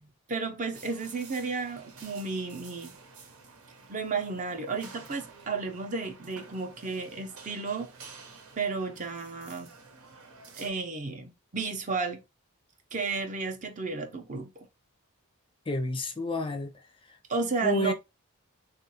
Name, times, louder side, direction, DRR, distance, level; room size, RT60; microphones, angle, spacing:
voice 1, 0.0-2.9 3.9-7.9 8.6-9.7 10.5-12.2 12.9-14.7 17.3-17.9, right 4 dB, 35° right, 0.6 m, -33 dB
sound 1, 0.7-10.7, right 4 dB, 85° right, 0.9 m, -51 dB
voice 2, 15.7-16.7 17.0-17.2 17.6-17.9, left 1 dB, 25° left, 0.5 m, -30 dB
3.7 x 2.5 x 2.8 m
head